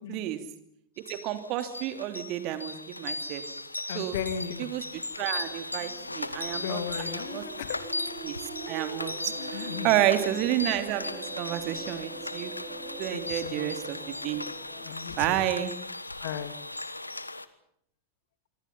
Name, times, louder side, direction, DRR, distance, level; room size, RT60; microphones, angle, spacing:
voice 1, 0.1-0.4 1.1-3.4 3.9-4.2 4.6-7.4 8.2-8.3 8.7-12.5 13.0-14.4 15.2-15.7, right 13 dB, 40° right, 9 dB, 2.9 m, -30 dB
sound 1, 1.1-17.5, left 2 dB, 85° left, 1.2 m, -37 dB
voice 2, 3.9-4.7 6.5-7.8 9.4-10.0 13.1-13.7 14.8-15.4 16.2-16.5, left 8 dB, 55° left, 11 dB, 2.6 m, -36 dB
sound 2, 5.8-15.0, right 4 dB, 15° right, 5.8 m, -45 dB
sound 3, 8.9-13.9, right 6 dB, 60° right, 5.4 m, -45 dB
25.0 x 25.0 x 5.7 m, 0.70 s
figure-of-eight pair, 90°, 0 cm